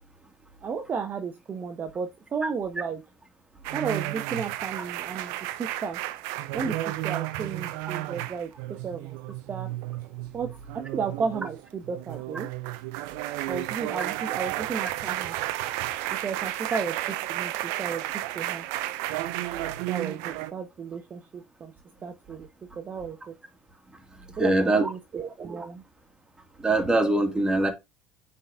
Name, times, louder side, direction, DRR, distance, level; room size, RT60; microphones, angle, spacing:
voice 1, 0.6-3.0 3.7-6.0 6.5-6.8 7.0-8.5 8.8-9.2 9.5-9.7 10.3-12.5 13.5-15.4 16.1-18.1 18.3-18.7 19.9-21.7 22.0-22.5 22.8-23.3 24.4-25.8, right 5 dB, 35° right, 1.2 m, -33 dB
sound 1, 3.6-20.5, right 16 dB, 60° right, 0.8 m, -32 dB
voice 2, 24.4-24.9 26.6-27.7, right 2 dB, 10° right, 2.4 m, -22 dB
9.0 x 4.2 x 3.6 m
figure-of-eight pair, 70°, 6 cm